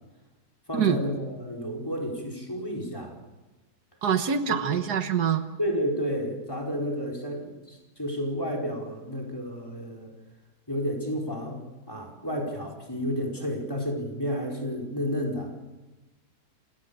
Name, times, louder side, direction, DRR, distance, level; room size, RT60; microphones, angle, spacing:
voice 1, 0.7-3.2 4.5-4.8 5.6-10.1 10.7-15.5, equal, 15° left, 0 dB, 4.8 m, -31 dB
voice 2, 4.0-5.5, right 7 dB, 80° right, 9 dB, 1.8 m, -25 dB
28.0 x 18.0 x 7.1 m, 1.1 s
omnidirectional pair, 1.7 m